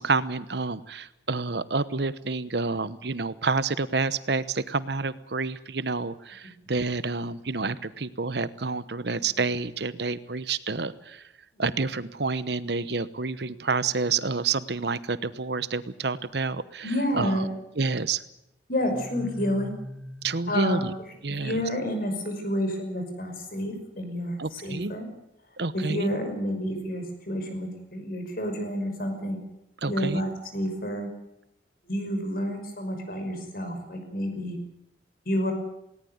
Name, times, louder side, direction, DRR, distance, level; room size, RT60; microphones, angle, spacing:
voice 1, 0.0-11.2 11.6-17.4 17.8-18.2 20.2-20.9 21.2-21.6 24.4-24.9 25.6-26.1 29.8-30.2, right 4 dB, 65° right, 15 dB, 1.0 m, -29 dB
voice 2, 16.8-17.5 18.7-19.7 20.5-20.8 21.3-25.1 25.7-29.4 29.9-31.1 31.9-34.6 35.3-35.5, equal, 50° left, 6 dB, 5.8 m, -29 dB
sound 1, 18.8-21.6, equal, 5° right, 2.9 m, -41 dB
19.0 x 18.5 x 9.4 m, 0.83 s
head